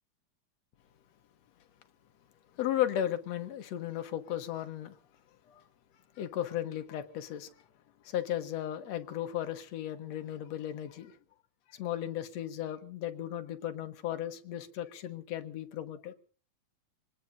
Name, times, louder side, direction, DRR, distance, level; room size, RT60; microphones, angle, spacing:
voice 1, 2.5-5.0 5.5-5.6 6.2-7.5 8.0-11.2 11.7-16.1, left 11 dB, 65° left, 9 dB, 2.3 m, -35 dB
25.5 x 19.5 x 2.7 m, 0.41 s
omnidirectional pair, 3.5 m